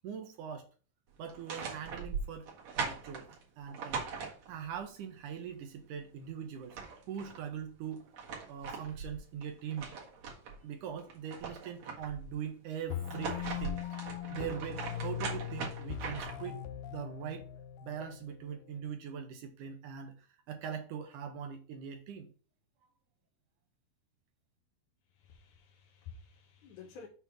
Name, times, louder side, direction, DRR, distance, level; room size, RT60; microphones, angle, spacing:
voice 1, 0.0-0.7 1.2-2.5 2.7-3.3 3.6-4.0 4.5-6.8 7.1-8.0 8.5-9.9 10.6-13.8 14.3-16.6 16.9-17.5 17.8-20.1 20.5-22.3, right 8 dB, 70° right, 2.1 m, -41 dB
sound 1, 1.2-4.8 6.2-6.3 6.6-7.4 7.9-10.6 11.0-12.3 12.9-16.5, right 5 dB, 55° right, 2.5 m, -40 dB
sound 2, 12.9-18.9, left 11 dB, 90° left, 2.7 m, -41 dB
voice 2, 25.2-27.1, left 6 dB, 65° left, 2.2 m, -51 dB
7.1 x 4.1 x 5.8 m
omnidirectional pair, 4.3 m